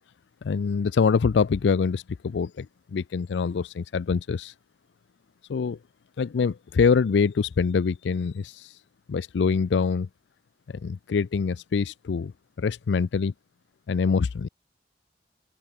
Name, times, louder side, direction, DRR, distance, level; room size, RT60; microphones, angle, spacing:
voice 1, 0.4-4.5 5.5-5.8 6.2-8.8 9.1-10.1 10.7-12.3 12.6-13.3 13.9-14.5, left 5 dB, 80° left, 0.4 m, -25 dB
open air
head